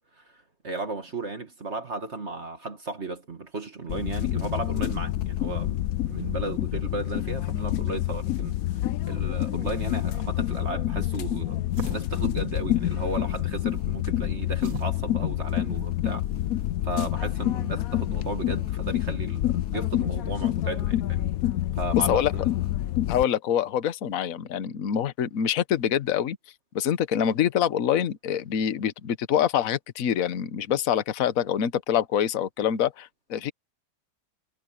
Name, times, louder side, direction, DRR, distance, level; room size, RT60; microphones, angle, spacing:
voice 1, 0.2-5.8 6.1-11.6 11.9-16.3 16.8-21.3 21.8-22.5, right 3 dB, 35° right, 2.0 m, -35 dB
sound 1, 3.9-23.2, left 13 dB, 70° left, 0.8 m, -28 dB
sound 2, 10.5-16.8, right 4 dB, 75° right, 2.8 m, -45 dB
voice 2, 23.1-26.4 26.7-33.5, left 9 dB, 50° left, 1.3 m, -25 dB
omnidirectional pair, 2.1 m